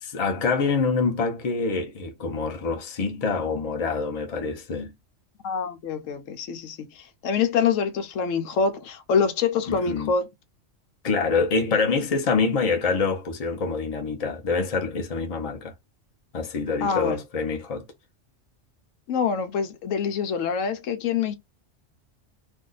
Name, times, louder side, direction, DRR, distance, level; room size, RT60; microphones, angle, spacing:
voice 1, 0.0-4.9 9.7-10.1 11.0-15.7 16.3-17.9, left 4 dB, 35° left, 0.7 m, -26 dB
voice 2, 5.4-10.3 16.8-17.2 19.1-21.4, left 6 dB, 85° left, 1.0 m, -25 dB
2.6 x 2.3 x 3.8 m
omnidirectional pair, 1.3 m